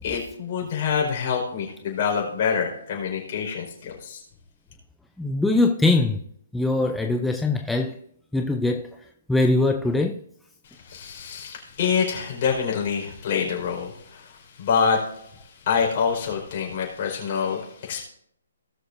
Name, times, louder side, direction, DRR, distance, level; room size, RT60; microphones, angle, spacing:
voice 1, 0.0-4.2 10.6-18.0, left 6 dB, 40° left, 4.7 m, -26 dB
voice 2, 5.2-6.2 6.5-8.0 8.3-8.9 9.3-10.2, left 2 dB, 5° left, 0.4 m, -22 dB
19.0 x 6.5 x 2.6 m
hypercardioid pair, 155°, 0 cm